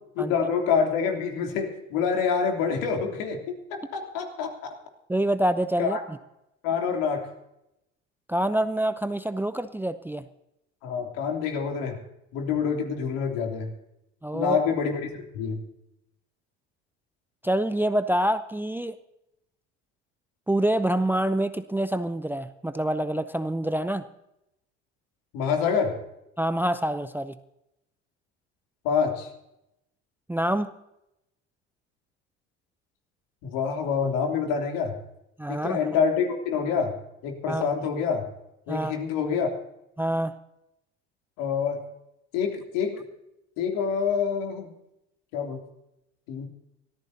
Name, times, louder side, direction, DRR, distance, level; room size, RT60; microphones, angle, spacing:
voice 1, 0.2-4.7 5.8-6.0 6.6-7.3 10.8-12.0 12.3-13.7 14.3-15.6 25.3-25.9 28.8-29.3 33.4-34.9 35.5-37.0 37.2-38.2 38.7-39.5 41.4-41.8 42.3-43.0 43.6-44.7 45.3-45.6 46.3-46.5, left 6 dB, 70° left, 2 dB, 3.2 m, -26 dB
voice 2, 5.1-6.2 8.3-10.2 14.2-14.6 17.4-19.0 20.5-24.1 26.4-27.4 30.3-30.7 35.4-35.8 37.5-37.6 38.7-38.9 40.0-40.4, right 1 dB, 5° right, 12 dB, 0.6 m, -26 dB
24.5 x 14.0 x 2.8 m, 0.86 s
hypercardioid pair, 70°, 35 cm